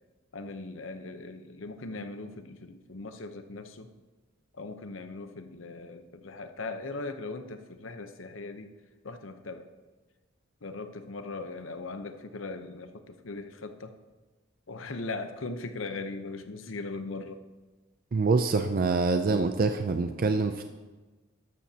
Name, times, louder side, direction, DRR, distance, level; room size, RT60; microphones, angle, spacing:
voice 1, 0.3-3.9 4.5-8.7 9.0-9.7 10.6-13.9 14.7-17.4, left 3 dB, 75° left, 8 dB, 0.8 m, -39 dB
voice 2, 18.1-20.6, right 3 dB, 45° right, 7 dB, 0.5 m, -25 dB
13.5 x 12.5 x 2.8 m, 1.2 s
head